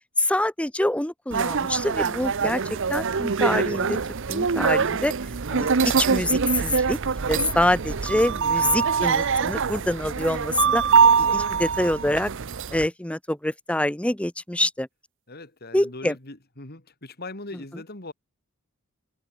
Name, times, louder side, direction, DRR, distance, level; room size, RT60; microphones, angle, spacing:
voice 1, 0.2-2.6 2.9-4.0 4.3-5.1 5.5-7.0 7.3-10.8 11.2-12.3 12.7-14.9 15.7-16.1, left 1 dB, 5° left, 0.7 m, -25 dB
sound 1, 1.3-12.9, right 6 dB, 60° right, 0.7 m, -23 dB
voice 2, 15.3-18.1, left 2 dB, 45° left, 3.2 m, -40 dB
open air
head